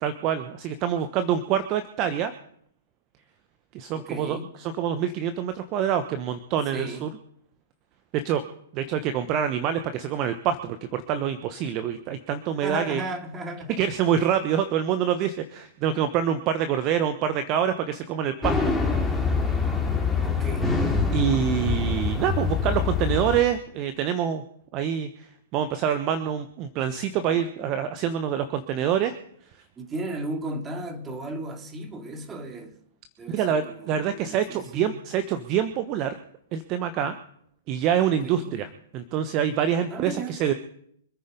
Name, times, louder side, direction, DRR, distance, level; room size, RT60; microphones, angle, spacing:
voice 1, 0.0-2.3 3.7-7.1 8.1-8.4 8.7-13.0 13.8-18.7 19.0-19.1 21.1-24.4 24.7-25.1 25.5-29.2 33.3-36.2 36.5-37.2 37.7-38.7 38.9-40.5, right 9 dB, 35° right, 10 dB, 1.2 m, -26 dB
voice 2, 3.9-4.5 6.7-7.2 12.6-13.8 20.2-20.9 27.2-27.4 29.8-32.8 33.2-35.0 38.2-38.6 39.9-40.4, right 2 dB, 20° right, 5 dB, 2.6 m, -35 dB
sound 1, 18.4-23.4, left 4 dB, 5° left, 2.6 m, -25 dB
25.5 x 9.7 x 5.3 m, 0.68 s
figure-of-eight pair, 110°, 0 cm